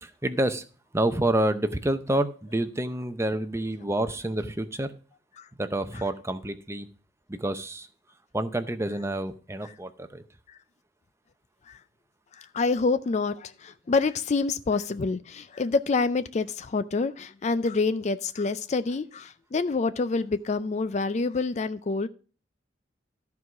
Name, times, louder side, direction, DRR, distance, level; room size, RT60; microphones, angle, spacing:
voice 1, 0.0-0.6 0.9-4.9 5.6-6.9 7.3-7.9 8.3-10.2, right 1 dB, 15° right, 0.6 m, -28 dB
voice 2, 12.3-22.1, left 4 dB, 35° left, 0.4 m, -27 dB
13.5 x 4.7 x 5.9 m
head